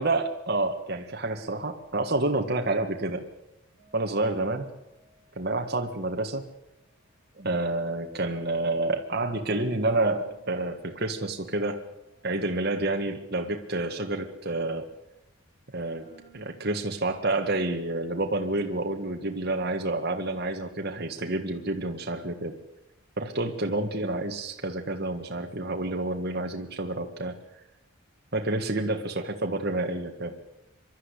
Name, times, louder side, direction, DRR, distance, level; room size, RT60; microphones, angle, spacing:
voice 1, 0.0-3.2 3.9-4.7 5.3-6.4 7.4-11.8 12.2-14.9 15.7-16.0 16.3-22.5 23.2-27.3 28.3-30.3, right 2 dB, 50° right, 4 dB, 1.7 m, -29 dB
sound 1, 3.8-6.8 9.2-13.6 16.0-20.5, right 2 dB, 40° left, 6.2 m, -60 dB
24.0 x 12.5 x 10.0 m, 0.93 s
head